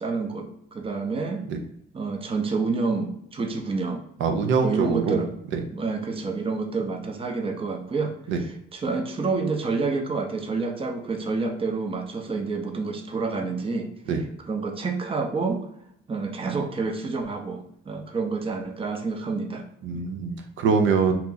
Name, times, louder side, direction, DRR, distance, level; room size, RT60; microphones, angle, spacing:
voice 1, 0.0-1.4 1.9-4.0 4.6-5.3 5.7-13.9 14.5-15.6 16.1-19.7 19.9-20.0, right 4 dB, 30° right, 4 dB, 0.6 m, -28 dB
voice 2, 4.2-5.2 5.5-5.6 8.3-8.4 14.1-14.2 19.8-21.1, right 5 dB, 75° right, 5 dB, 0.5 m, -23 dB
2.9 x 2.4 x 3.8 m, 0.75 s
cardioid pair, 90°, 20 cm